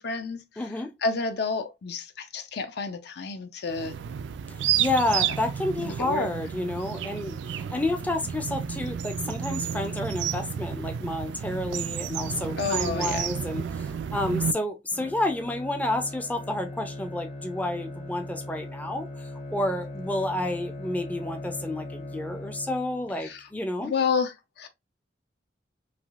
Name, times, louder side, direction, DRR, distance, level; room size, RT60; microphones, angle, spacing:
voice 1, 0.0-0.4 1.0-3.9 5.8-6.3 12.6-13.3 23.2-23.4 23.8-24.7, left 4 dB, 65° left, 0.5 m, -30 dB
voice 2, 0.6-0.9 4.8-23.9, left 1 dB, 10° left, 0.4 m, -30 dB
sound 1, 3.7-14.5, right 8 dB, 75° right, 0.3 m, -31 dB
Bowed string instrument, 14.9-23.2, left 1 dB, 35° left, 0.7 m, -39 dB
3.3 x 2.6 x 2.3 m
head